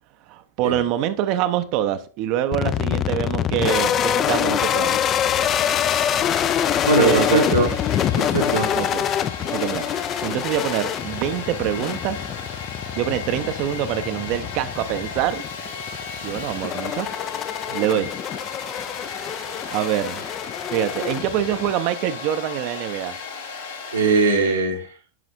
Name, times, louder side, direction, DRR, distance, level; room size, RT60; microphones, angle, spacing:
voice 1, 0.3-5.0 7.0-7.4 8.7-9.0 9.5-9.9 10.2-12.3 12.9-15.4 16.2-17.1 17.7-18.1 19.7-20.2 20.7-23.2, right 11 dB, 40° right, 0.5 m, -25 dB
sound 1, 2.5-21.7, left 10 dB, 30° left, 0.3 m, -25 dB
Domestic sounds home sounds, 5.1-24.6, left 5 dB, 60° left, 1.2 m, -35 dB
voice 2, 6.8-7.7 8.2-8.7 23.9-24.9, right 3 dB, 80° right, 1.1 m, -20 dB
10.5 x 4.9 x 2.5 m
figure-of-eight pair, 90°, 0 cm